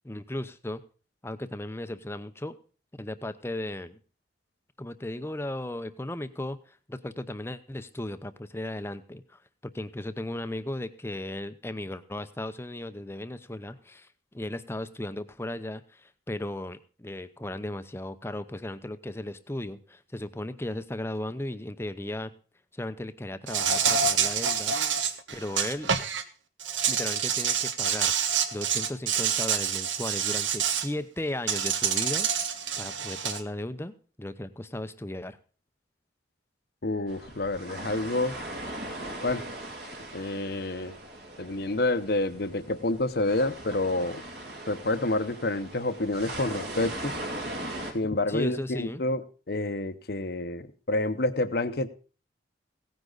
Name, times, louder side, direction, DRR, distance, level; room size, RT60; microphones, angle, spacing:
voice 1, 0.0-0.8 1.2-2.6 3.0-4.0 4.8-22.3 22.7-24.8 25.3-25.9 26.9-28.1 28.5-32.3 32.8-33.9 34.2-35.4 48.3-49.0, left 1 dB, 15° left, 11 dB, 0.7 m, -36 dB
Insect, 23.5-26.2 26.6-30.9 31.5-33.4, right 7 dB, 80° right, 1.1 m, -27 dB
voice 2, 36.8-38.4 39.2-39.4 40.1-41.0 41.4-44.2 44.7-47.1 47.9-49.2 49.5-51.9, left 2 dB, 55° left, 11 dB, 0.9 m, -28 dB
sound 1, 37.1-47.9, right 1 dB, 60° right, 2.5 m, -39 dB
16.5 x 9.9 x 4.0 m, 0.38 s
head